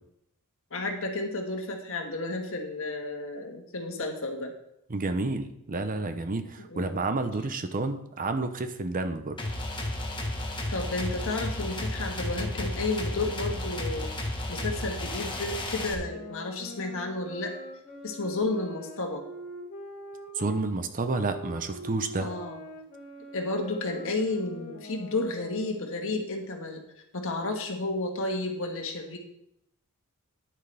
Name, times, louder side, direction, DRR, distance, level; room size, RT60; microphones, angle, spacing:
voice 1, 0.7-4.5 6.6-7.0 10.7-14.1 14.5-17.5 18.0-19.2 22.2-22.6 23.3-26.8 27.1-29.2, left 2 dB, 65° left, 3 dB, 1.6 m, -32 dB
voice 2, 4.9-9.4 20.4-22.3, right 3 dB, 40° right, 9 dB, 0.7 m, -30 dB
sound 1, 9.4-15.9, left 1 dB, 20° left, 1.4 m, -33 dB
sound 2, 15.9-20.6 21.1-26.0, equal, 40° left, 2.2 m, -43 dB
10.0 x 9.3 x 3.4 m, 0.78 s
head